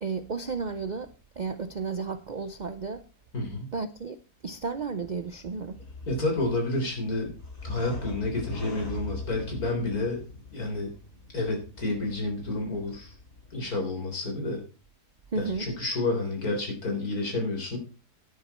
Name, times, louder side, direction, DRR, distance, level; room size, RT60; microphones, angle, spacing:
voice 1, 0.0-3.0 3.7-4.2 4.4-5.8 15.3-15.7, right 4 dB, 70° right, 0.4 m, -33 dB
voice 2, 3.3-3.7 6.1-7.3 7.6-10.2 10.5-10.9 11.3-13.1 13.5-14.6 15.3-17.8, left 2 dB, 65° left, 4.5 m, -30 dB
sound 1, 5.2-13.7, left 2 dB, 45° left, 4.5 m, -42 dB
11.0 x 10.5 x 4.3 m
omnidirectional pair, 1.7 m